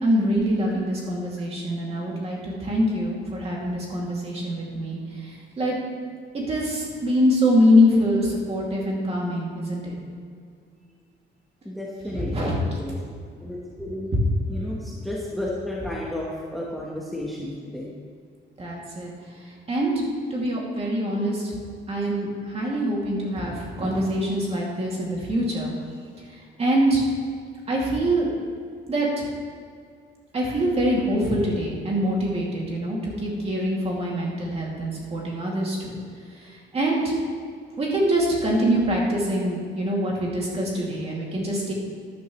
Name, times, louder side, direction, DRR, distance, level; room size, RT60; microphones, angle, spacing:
voice 1, 0.0-5.8 6.3-9.9 12.1-12.6 18.6-19.1 19.4-19.9 20.3-21.5 21.9-25.7 26.3-27.0 27.7-28.3 28.9-29.3 30.3-36.0 36.3-37.1 37.8-41.7, equal, 30° right, -3 dB, 2.5 m, -24 dB
voice 2, 11.6-13.0 13.4-14.1 14.5-17.9, left 1 dB, ahead, -5 dB, 1.2 m, -32 dB
13.5 x 10.5 x 3.2 m, 2.2 s
cardioid pair, 165°, 19 cm